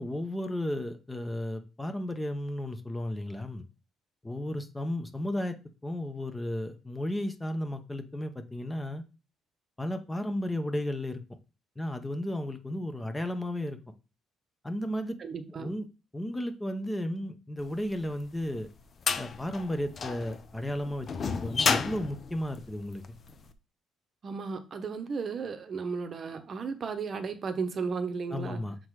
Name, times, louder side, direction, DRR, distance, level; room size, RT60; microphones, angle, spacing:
voice 1, 0.0-3.6 4.2-5.5 5.8-9.0 9.8-11.2 11.8-13.8 14.6-15.1 15.6-15.9 16.1-18.7 19.2-23.0 28.3-28.8, left 1 dB, 10° left, 8 dB, 0.9 m, -34 dB
voice 2, 15.2-15.7 24.2-28.6, right 5 dB, 45° right, 9 dB, 0.9 m, -34 dB
sound 1, 18.0-23.3, left 5 dB, 40° left, 0.7 m, -31 dB
6.4 x 3.9 x 4.7 m, 0.30 s
cardioid pair, 110°, 0 cm